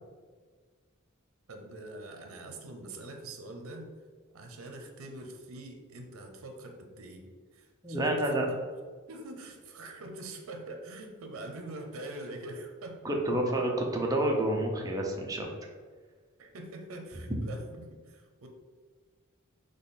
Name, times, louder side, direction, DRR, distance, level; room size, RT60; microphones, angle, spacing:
voice 1, 1.5-3.9 4.3-8.6 9.1-13.0 16.4-18.5, right 2 dB, 80° right, 4 dB, 0.7 m, -44 dB
voice 2, 7.8-8.5 13.0-15.5, right 1 dB, 15° right, 0 dB, 0.6 m, -29 dB
4.0 x 3.1 x 4.1 m, 1.5 s
head